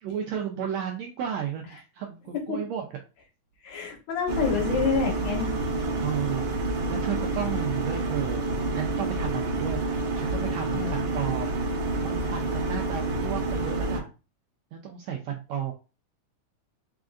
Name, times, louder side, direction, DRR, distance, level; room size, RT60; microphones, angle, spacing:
voice 1, 0.0-2.8 6.0-6.5 6.9-8.5 8.7-11.6 12.0-14.1 14.7-15.7, right 9 dB, 80° right, 2 dB, 1.6 m, -33 dB
voice 2, 3.6-5.5 10.7-11.1, left 6 dB, 65° left, 0 dB, 2.2 m, -28 dB
sound 1, 4.3-14.0, right 2 dB, 55° right, 1.5 m, -28 dB
5.0 x 3.7 x 2.4 m, 0.31 s
omnidirectional pair, 3.6 m